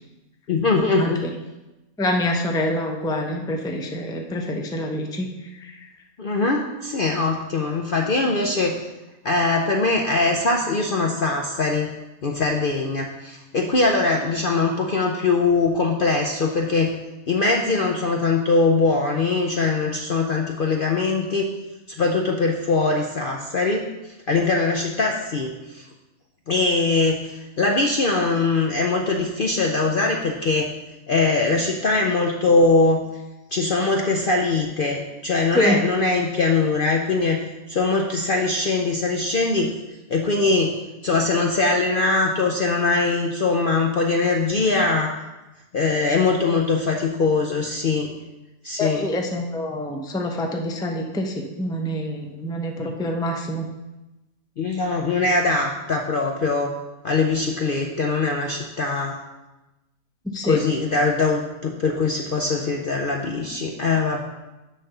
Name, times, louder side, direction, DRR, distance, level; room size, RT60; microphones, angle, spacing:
voice 1, 0.5-1.2 6.2-8.8 9.2-11.9 12.2-17.0 17.3-21.5 22.0-25.9 26.5-30.7 31.1-33.1 33.5-39.7 40.1-40.8 41.0-45.1 45.7-48.1 48.6-49.1 52.8-52.9 54.6-56.7 57.0-59.2 60.4-64.2, left 3 dB, 55° left, 2 dB, 0.6 m, -22 dB
voice 2, 2.0-5.3 5.6-5.8 35.5-35.8 48.8-53.7 60.3-60.6, left 1 dB, 5° left, 2 dB, 0.5 m, -26 dB
10.0 x 3.4 x 6.7 m, 1.0 s
omnidirectional pair, 1.5 m